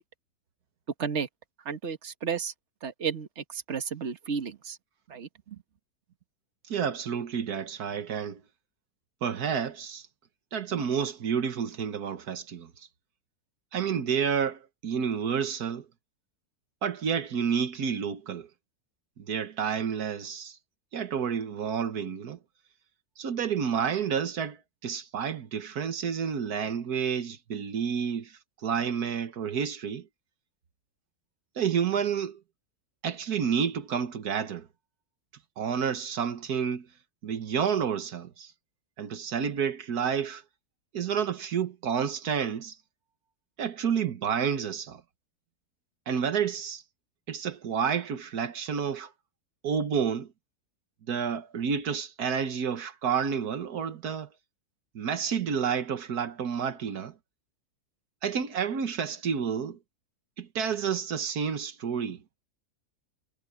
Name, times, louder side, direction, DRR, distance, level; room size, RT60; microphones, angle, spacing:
voice 1, 1.7-2.5 2.8-4.8 5.1-5.6, right 6 dB, 50° right, 1.7 m, -33 dB
voice 2, 6.7-8.4 9.2-10.1 10.5-12.9 13.7-15.9 16.8-18.5 19.2-20.6 20.9-22.4 23.2-30.1 31.5-32.4 33.0-34.7 35.6-36.9 37.2-38.5 39.0-40.4 40.9-42.8 43.6-45.0 46.1-46.8 47.3-49.1 49.6-50.3 51.1-54.3 54.9-57.1 58.2-59.8 60.4-62.2, right 7 dB, 80° right, 1.7 m, -30 dB
omnidirectional pair, 1.6 m